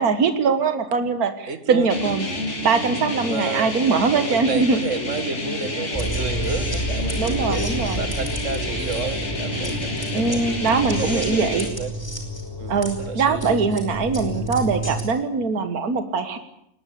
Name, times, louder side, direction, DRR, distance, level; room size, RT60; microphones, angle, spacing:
voice 1, 0.0-2.3 2.6-4.8 7.2-8.1 10.1-11.7 12.7-16.4, right 4 dB, 70° right, 9 dB, 2.0 m, -22 dB
voice 2, 1.5-1.9 3.2-3.8 4.1-11.9 12.6-13.6, right 4 dB, 50° right, 10 dB, 2.0 m, -31 dB
sound 1, 1.9-11.7, left 2 dB, 45° left, 3.2 m, -29 dB
sound 2, 5.9-15.0, right 1 dB, 15° left, 4.7 m, -29 dB
22.0 x 19.5 x 8.5 m, 0.78 s
omnidirectional pair, 1.6 m